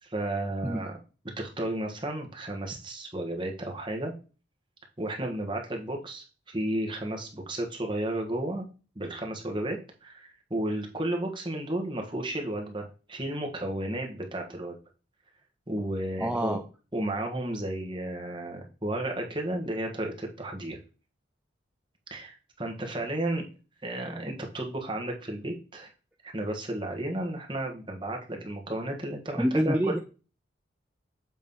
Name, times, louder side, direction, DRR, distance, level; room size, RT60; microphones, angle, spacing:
voice 1, 0.0-1.0 1.4-4.1 5.0-8.6 8.9-14.7 15.7-16.6 16.9-20.8 22.1-23.4 23.8-25.9 26.2-30.0, right 1 dB, 25° right, 1 dB, 1.3 m, -33 dB
voice 2, 16.2-16.6 29.4-30.0, right 1 dB, 5° right, 5 dB, 0.3 m, -26 dB
7.6 x 3.1 x 5.4 m, 0.34 s
head